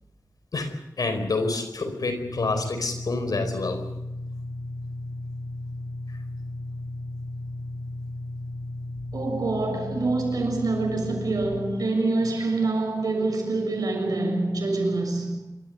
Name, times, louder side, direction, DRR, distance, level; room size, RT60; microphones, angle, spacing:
voice 1, 0.5-3.8, left 3 dB, 85° left, 4.7 m, -28 dB
sound 1, 2.2-11.8, left 2 dB, 65° left, 3.2 m, -35 dB
voice 2, 9.1-15.5, right 3 dB, 85° right, 6.8 m, -26 dB
27.0 x 14.0 x 9.7 m
wide cardioid pair, 60°, 6 cm